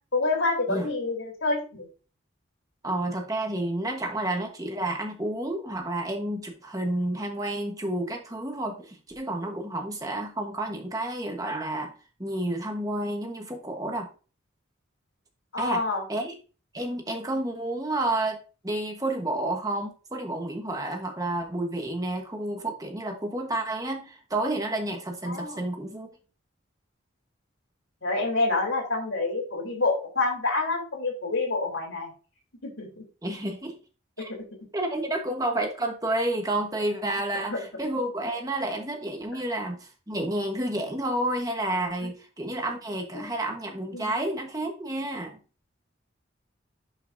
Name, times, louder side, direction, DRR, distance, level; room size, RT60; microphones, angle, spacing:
voice 1, 0.1-1.9 15.5-16.0 25.2-25.6 28.0-32.1 32.6-33.0 37.5-37.6 42.0-42.1 43.9-44.1, left 3 dB, 80° left, 1 dB, 3.9 m, -27 dB
voice 2, 2.8-11.9 12.2-14.1 15.6-15.8 16.1-16.3 16.7-18.4 18.6-26.1 33.2-33.7 34.2-34.3 34.7-45.4, right 1 dB, 15° right, 3 dB, 1.3 m, -30 dB
11.0 x 5.6 x 2.7 m, 0.35 s
head